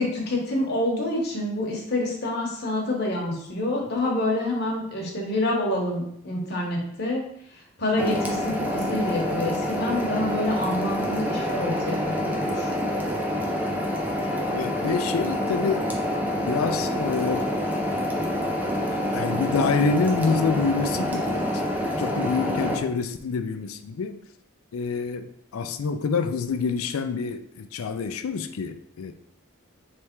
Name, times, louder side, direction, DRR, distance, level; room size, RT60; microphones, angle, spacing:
voice 1, 0.0-7.2 7.5-12.7, left 1 dB, 50° left, -1 dB, 1.1 m, -27 dB
sound 1, 8.0-22.8, equal, 10° right, 0.5 m, -27 dB
voice 2, 14.5-15.9 16.4-17.5 18.9-21.5 22.0-24.2 24.7-29.1, left 5 dB, 85° left, 9 dB, 0.4 m, -27 dB
3.4 x 3.3 x 4.4 m, 0.71 s
head